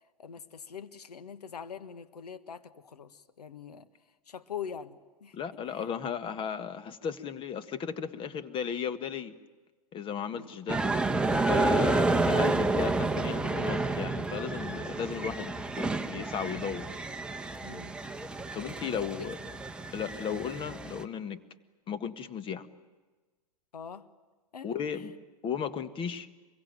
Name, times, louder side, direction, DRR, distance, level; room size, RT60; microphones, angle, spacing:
voice 1, 0.2-3.9 4.3-5.4 5.7-5.8 10.3-10.5 17.6-18.0 18.9-19.0 20.0-20.1 23.7-24.1 24.5-24.7 24.9-25.0, left 7 dB, 75° left, 11 dB, 1.5 m, -43 dB
voice 2, 5.3-9.3 9.9-10.8 11.5-16.9 18.5-19.4 19.9-21.4 21.9-22.7 24.6-25.1 25.4-26.3, left 7 dB, 25° left, 11 dB, 1.6 m, -35 dB
sound 1, 10.7-21.0, right 2 dB, 5° right, 1.2 m, -30 dB
26.5 x 22.5 x 9.2 m, 1.3 s
figure-of-eight pair, 105°, 20 cm